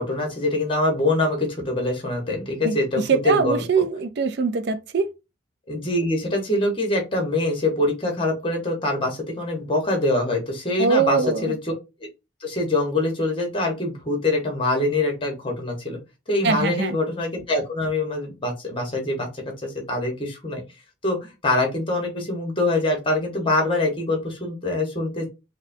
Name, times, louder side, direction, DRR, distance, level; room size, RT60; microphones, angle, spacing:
voice 1, 0.0-3.8 5.7-11.7 12.4-16.0 16.3-20.6 21.0-25.3, left 2 dB, 25° left, 1.2 m, -24 dB
voice 2, 2.6-5.1 10.8-11.4 16.4-17.0, right 5 dB, 55° right, 0.4 m, -22 dB
4.8 x 2.2 x 2.7 m
head